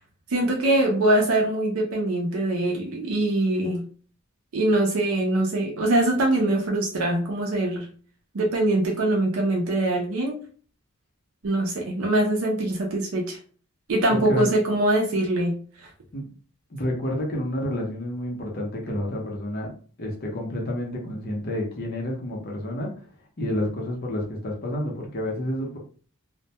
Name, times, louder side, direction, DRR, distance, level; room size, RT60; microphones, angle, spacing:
voice 1, 0.3-3.9 4.5-7.9 8.3-10.4 11.4-13.4 13.9-15.9, right 1 dB, 75° right, 0 dB, 0.5 m, -23 dB
voice 2, 14.1-14.5 16.1-16.3 16.7-19.7 20.0-22.9 23.4-25.8, left 1 dB, 45° left, 0 dB, 0.6 m, -29 dB
2.1 x 2.1 x 2.7 m, 0.42 s
head